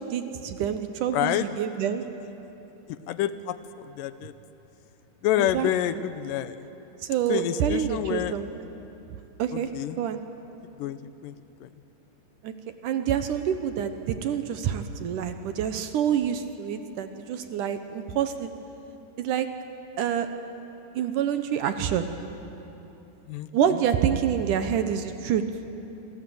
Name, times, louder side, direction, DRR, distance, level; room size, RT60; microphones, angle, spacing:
voice 1, 0.0-2.0 5.4-5.7 7.0-8.5 9.4-9.7 10.0-10.2 12.4-12.5 12.8-18.5 19.2-19.5 20.0-20.3 20.9-22.1 23.5-25.4, right 9 dB, 70° right, 8 dB, 2.0 m, -27 dB
voice 2, 1.1-1.5 2.9-4.3 5.2-6.7 7.3-8.3 9.5-10.0 10.6-11.4 11.6-11.7 23.3-23.8, left 12 dB, 75° left, 12 dB, 2.1 m, -28 dB
27.5 x 26.5 x 7.9 m, 3.0 s
omnidirectional pair, 4.8 m